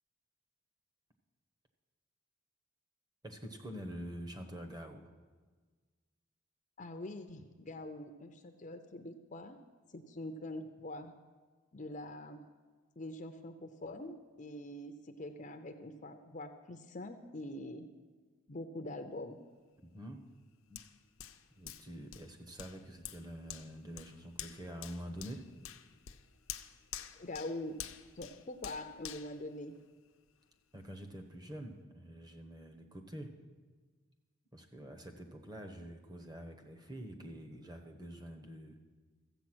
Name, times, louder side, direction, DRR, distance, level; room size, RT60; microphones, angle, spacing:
voice 1, 3.2-5.1 19.8-20.2 20.7-20.8 21.6-25.4 30.7-33.3 34.5-38.8, equal, 20° right, 4 dB, 1.0 m, -46 dB
voice 2, 6.8-9.6 9.9-11.1 11.7-12.5 13.0-17.9 18.5-19.4 27.2-27.8 28.1-29.8, left 1 dB, 35° left, 6 dB, 0.5 m, -44 dB
Hands, 20.8-30.3 30.7-30.9, left 10 dB, 75° left, 0.6 m, -49 dB
14.0 x 8.1 x 6.1 m, 1.4 s
head